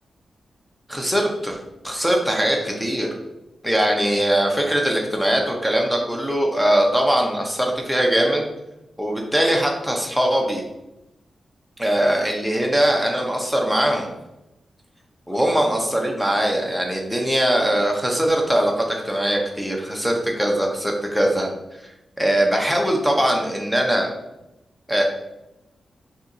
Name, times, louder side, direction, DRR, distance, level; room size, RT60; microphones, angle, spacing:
voice 1, 0.9-1.6 1.8-3.1 3.6-8.4 9.0-10.6 11.8-14.1 15.3-21.5 22.2-24.1 24.9-25.0, right 1 dB, ahead, 1 dB, 0.6 m, -21 dB
5.6 x 2.8 x 2.6 m, 0.92 s
wide cardioid pair, 165°, 0 cm